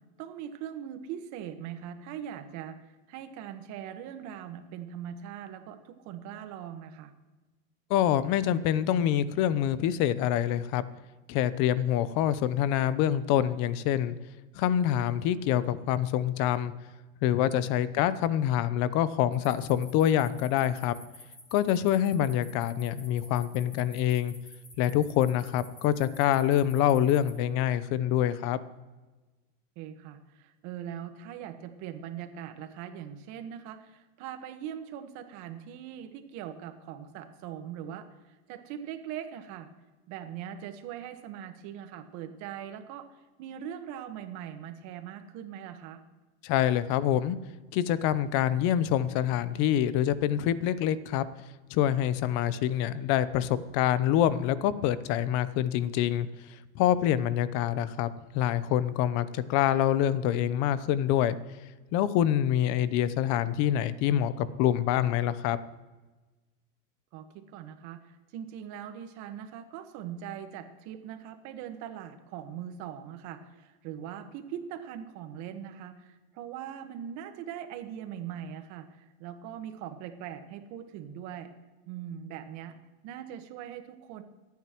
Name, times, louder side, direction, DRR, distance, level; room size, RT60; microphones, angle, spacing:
voice 1, 0.2-2.8 3.1-7.1 29.7-39.7 40.1-43.1 43.4-46.0 67.1-81.5 81.9-84.2, right 9 dB, 55° right, 8 dB, 1.5 m, -41 dB
voice 2, 7.9-10.8 11.3-14.2 14.5-16.7 17.2-20.9 21.5-24.3 24.8-28.6 46.4-47.4 47.7-51.2 51.7-56.3 56.7-58.1 58.3-61.4 61.9-65.6, left 11 dB, 55° left, 15 dB, 0.8 m, -26 dB
sound 1, 19.3-27.3, left 2 dB, 20° left, 3.0 m, -50 dB
24.5 x 9.4 x 3.1 m, 1.2 s
supercardioid pair, 135°, 34 cm